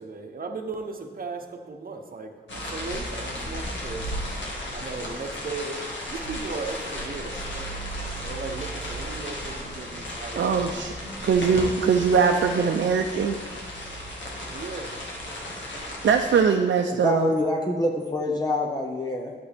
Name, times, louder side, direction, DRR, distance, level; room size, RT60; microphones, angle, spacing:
voice 1, 0.0-4.1 4.7-5.8 6.1-7.8 8.2-10.8 12.6-12.7 14.5-15.0 15.5-15.9, right 3 dB, 50° right, 4 dB, 0.9 m, -37 dB
sound 1, 2.5-16.4, equal, 80° left, 1.8 m, -34 dB
voice 2, 10.4-10.9 11.2-13.4 16.0-17.3, right 6 dB, 85° right, 3 dB, 0.5 m, -21 dB
voice 3, 17.0-19.3, left 1 dB, 20° left, -1 dB, 0.6 m, -26 dB
12.0 x 6.9 x 3.4 m, 1.5 s
wide cardioid pair, 175°, 19 cm